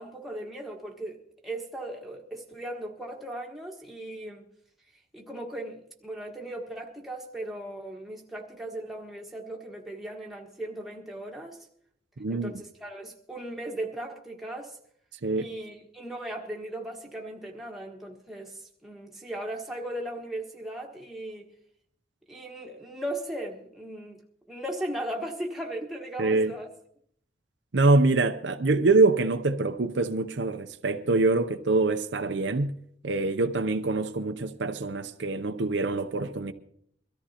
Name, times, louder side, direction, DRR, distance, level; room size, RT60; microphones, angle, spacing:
voice 1, 0.0-4.5 5.1-11.7 12.3-14.8 15.3-21.5 22.3-24.2 24.5-26.7, right 1 dB, ahead, 1.5 m, -37 dB
voice 2, 12.2-12.5 15.2-15.5 26.2-26.5 27.7-32.7 33.0-36.5, right 3 dB, 70° right, 0.6 m, -24 dB
23.5 x 14.0 x 2.9 m
head